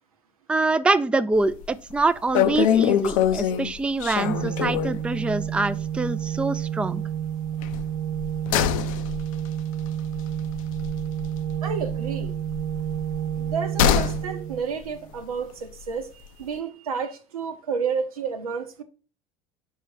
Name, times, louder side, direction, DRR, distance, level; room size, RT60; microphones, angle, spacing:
voice 1, 0.5-7.0, right 3 dB, 5° right, 0.4 m, -25 dB
sound 1, 1.4-1.7 2.0-2.1 2.3-5.1 5.4-5.6 5.9-6.0 7.6-11.6 11.8-14.3 14.5-14.6, left 9 dB, 70° left, 0.6 m, -24 dB
Organ, 4.2-15.1, right 10 dB, 60° right, 0.5 m, -30 dB
voice 2, 11.6-12.4 13.3-16.1 16.4-18.8, right 6 dB, 85° right, 0.9 m, -30 dB
5.6 x 4.9 x 4.6 m
hypercardioid pair, 70°, 18 cm